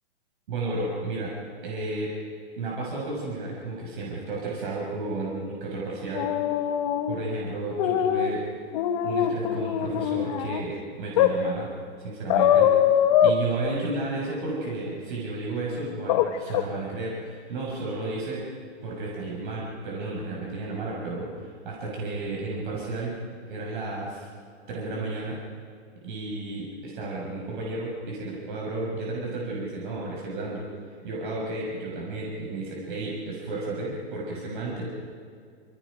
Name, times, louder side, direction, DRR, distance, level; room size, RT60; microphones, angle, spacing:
voice 1, 0.5-1.3 1.6-2.1 2.6-6.3 7.1-8.4 9.0-11.7 12.0-12.7 13.2-18.4 18.8-23.2 23.5-24.3 24.7-25.4 26.0-30.7 31.0-34.9, right 2 dB, 50° right, -4 dB, 6.0 m, -32 dB
sound 1, 6.1-7.2 7.8-8.3 8.7-10.6 11.2-11.3 12.3-13.4 16.1-16.3 16.5-16.6, left 10 dB, 35° left, 1.4 m, -22 dB
28.0 x 26.5 x 5.1 m, 2.2 s
hypercardioid pair, 160°, 33 cm